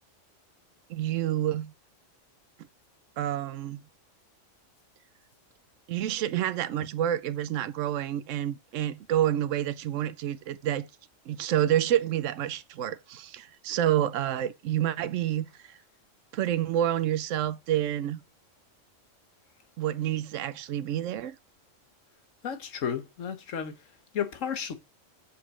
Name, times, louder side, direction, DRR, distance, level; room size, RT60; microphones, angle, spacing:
voice 1, 0.9-1.7 3.2-3.8 5.9-10.9 11.3-15.8 16.3-18.2 19.8-21.4, right 11 dB, 80° right, 1.0 m, -28 dB
voice 2, 22.4-23.8 24.1-24.7, left 8 dB, 85° left, 1.4 m, -32 dB
7.1 x 5.9 x 6.0 m
omnidirectional pair, 1.3 m